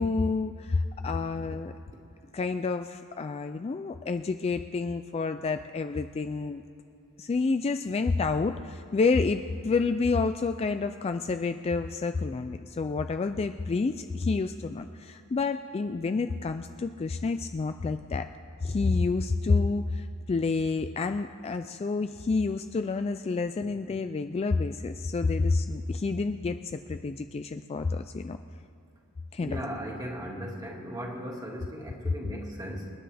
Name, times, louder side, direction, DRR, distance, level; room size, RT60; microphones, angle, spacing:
voice 1, 0.0-1.7 2.3-6.6 7.2-18.3 18.6-28.4 29.3-29.6, left 4 dB, 30° left, 8 dB, 0.3 m, -29 dB
voice 2, 29.4-32.9, equal, 15° right, -1 dB, 2.0 m, -37 dB
28.5 x 9.9 x 3.4 m, 2.8 s
head